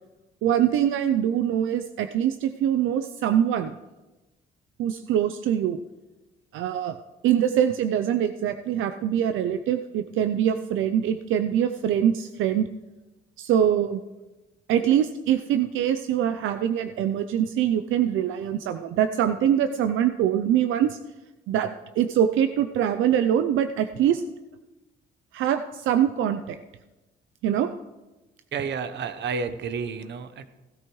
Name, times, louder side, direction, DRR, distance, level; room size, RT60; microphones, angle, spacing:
voice 1, 0.4-3.8 4.8-5.8 6.5-7.0 7.2-12.7 13.4-14.0 14.7-21.0 21.5-21.7 22.0-24.2 25.3-26.6 27.4-27.7, right 10 dB, 85° right, 9 dB, 0.5 m, -23 dB
voice 2, 28.5-30.5, right 5 dB, 65° right, 11 dB, 0.9 m, -30 dB
16.5 x 12.0 x 3.1 m, 1.1 s
cardioid pair, 90°, 20 cm